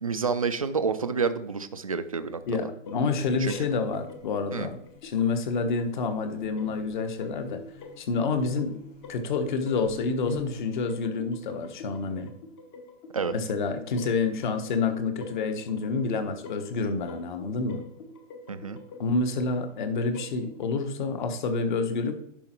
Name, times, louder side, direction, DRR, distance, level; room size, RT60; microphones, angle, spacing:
voice 1, 0.0-2.7 3.4-3.5 4.5-4.7 13.1-13.3 18.5-18.8, right 5 dB, 30° right, 11 dB, 0.3 m, -29 dB
voice 2, 2.5-4.7 5.0-7.6 8.0-8.8 9.1-12.3 13.3-17.8 19.0-22.1, left 4 dB, 40° left, 8 dB, 1.2 m, -28 dB
sound 1, 2.5-20.7, left 2 dB, 20° left, 0.8 m, -46 dB
Buzz, 3.4-10.8, left 7 dB, 85° left, 2.4 m, -44 dB
10.5 x 5.6 x 4.4 m, 0.75 s
hypercardioid pair, 160°, 37 cm